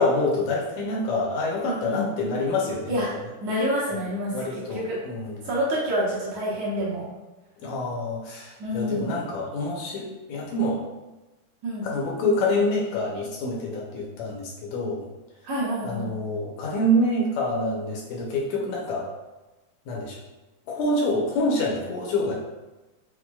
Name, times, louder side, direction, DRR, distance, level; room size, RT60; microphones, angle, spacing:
voice 1, 0.0-3.0 4.3-5.5 7.6-10.8 11.8-15.0 15.8-19.1 19.9-20.2 20.7-22.3, left 1 dB, 75° left, -2 dB, 1.9 m, -26 dB
voice 2, 1.6-2.1 2.9-3.1 3.4-4.3 4.7-5.0 5.4-7.1 8.6-9.1 11.6-11.9 15.4-16.1, equal, 70° right, -7 dB, 1.8 m, -27 dB
5.9 x 2.1 x 2.2 m, 1.1 s
omnidirectional pair, 3.5 m